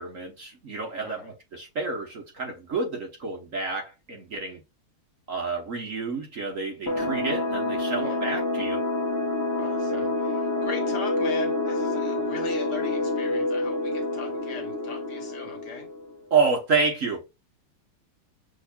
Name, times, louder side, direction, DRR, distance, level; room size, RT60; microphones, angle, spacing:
voice 1, 0.0-4.6 5.3-8.8 16.3-17.2, right 4 dB, 45° right, 1.3 m, -29 dB
sound 1, 6.9-16.2, left 2 dB, 20° left, 0.6 m, -28 dB
voice 2, 9.6-15.9, left 5 dB, 55° left, 1.9 m, -39 dB
6.4 x 3.1 x 2.4 m
omnidirectional pair, 2.2 m